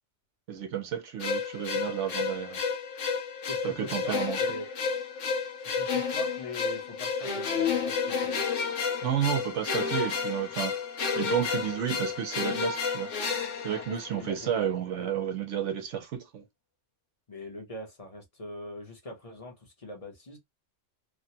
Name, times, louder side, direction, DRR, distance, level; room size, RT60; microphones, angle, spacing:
voice 1, 0.5-2.6 3.6-4.4 9.0-10.7 11.1-13.1 13.6-16.4, right 9 dB, 75° right, 1.1 m, -31 dB
sound 1, 1.2-14.5, left 5 dB, 80° left, 1.2 m, -31 dB
voice 2, 3.5-4.7 5.6-8.4 13.9-14.7 15.0-15.1 17.3-20.4, left 1 dB, 30° left, 0.9 m, -42 dB
3.2 x 2.2 x 2.8 m
omnidirectional pair, 1.2 m